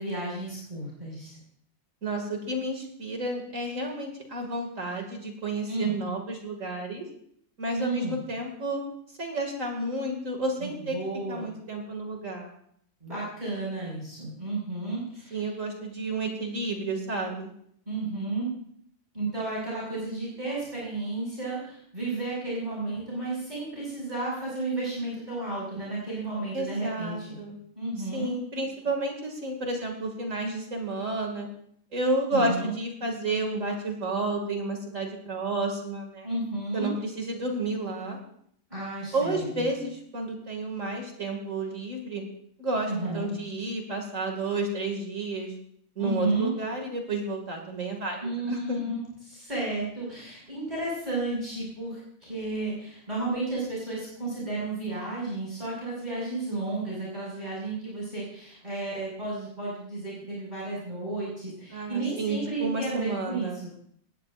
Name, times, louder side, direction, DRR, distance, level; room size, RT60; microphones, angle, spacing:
voice 1, 0.0-1.4 5.7-5.9 7.7-8.1 10.6-11.5 13.0-15.4 17.9-18.5 19.1-27.4 27.8-28.3 32.3-32.7 36.2-36.9 38.7-39.7 42.9-43.3 46.0-46.5 48.2-63.7, right 2 dB, 30° right, -7 dB, 5.9 m, -32 dB
voice 2, 2.0-7.0 7.6-8.8 9.2-11.0 11.3-12.5 15.3-17.5 26.5-27.6 28.1-31.5 31.9-36.3 36.7-38.2 39.1-42.2 42.6-45.5 46.0-48.8 61.7-63.6, right 2 dB, 65° right, 2 dB, 2.6 m, -31 dB
20.0 x 17.5 x 2.5 m, 0.66 s
omnidirectional pair, 1.4 m